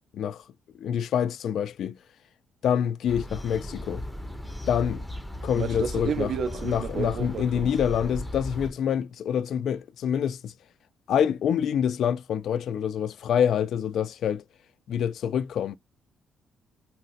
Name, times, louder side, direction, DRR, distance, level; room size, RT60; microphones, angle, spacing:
voice 1, 0.1-0.4 0.8-2.0 2.6-4.0 4.7-5.1 5.4-6.3 6.6-10.5 11.1-14.4 14.9-15.7, left 8 dB, 70° left, 0.3 m, -26 dB
sound 1, 3.1-8.7, left 1 dB, 5° left, 0.6 m, -36 dB
voice 2, 5.5-7.7, right 7 dB, 65° right, 0.5 m, -31 dB
2.6 x 2.1 x 3.8 m
cardioid pair, 90°, 0 cm